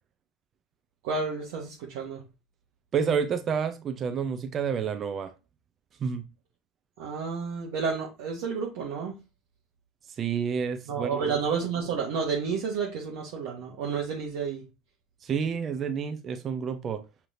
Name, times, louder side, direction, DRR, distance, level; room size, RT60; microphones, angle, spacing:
voice 1, 1.0-2.2 7.0-9.2 10.9-14.6, right 5 dB, 60° right, 0.9 m, -30 dB
voice 2, 2.9-5.3 6.0-6.2 10.1-11.2 15.2-17.1, right 6 dB, 35° right, 0.5 m, -29 dB
6.2 x 2.9 x 2.6 m
figure-of-eight pair, 70°, 0 cm